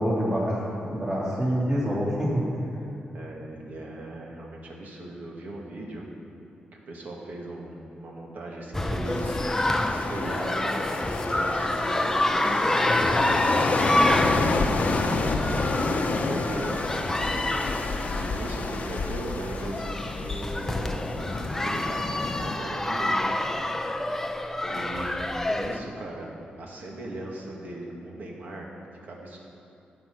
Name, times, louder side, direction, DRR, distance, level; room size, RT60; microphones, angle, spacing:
voice 1, 0.0-2.4, equal, 30° right, -8 dB, 3.2 m, -26 dB
voice 2, 3.1-6.0 6.7-14.8 15.8-17.3 18.1-23.6 24.7-26.3 26.6-28.7 29.0-29.4, right 1 dB, 60° right, -1 dB, 2.0 m, -38 dB
sound 1, 8.7-25.8, left 1 dB, 10° left, 0.6 m, -28 dB
sound 2, 9.0-22.6, left 3 dB, 50° left, 0.9 m, -29 dB
16.0 x 5.9 x 5.9 m, 2.6 s
wide cardioid pair, 115°, 3 cm